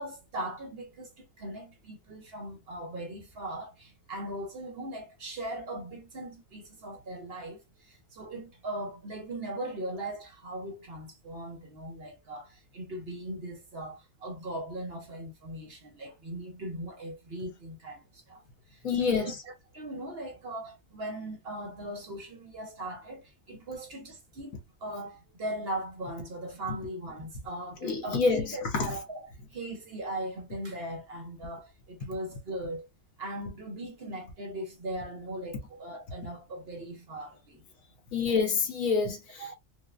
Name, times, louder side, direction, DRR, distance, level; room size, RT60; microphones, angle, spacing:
voice 1, 0.0-18.4 18.7-24.5 24.8-32.9 33.2-37.6 39.4-39.5, right 1 dB, 50° right, 1.0 m, -39 dB
voice 2, 18.8-19.3 27.8-28.4 28.8-28.9 38.1-39.4, left 5 dB, 70° left, 1.3 m, -27 dB
4.7 x 2.2 x 2.4 m
omnidirectional pair, 1.4 m